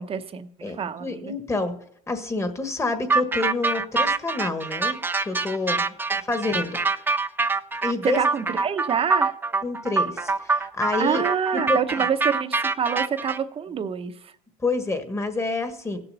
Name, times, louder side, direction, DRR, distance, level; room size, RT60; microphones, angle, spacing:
voice 1, 0.0-1.3 8.0-9.3 11.0-14.3, right 7 dB, 35° right, 10 dB, 0.9 m, -27 dB
voice 2, 0.6-1.7 2.1-5.0 5.2-5.9 6.2-6.8 7.8-8.2 9.6-11.2 11.5-12.1 14.6-16.0, left 3 dB, 15° left, 7 dB, 1.5 m, -28 dB
sound 1, 3.1-13.4, right 3 dB, 10° right, 0.6 m, -25 dB
16.0 x 6.9 x 5.6 m, 0.69 s
supercardioid pair, 105°, 18 cm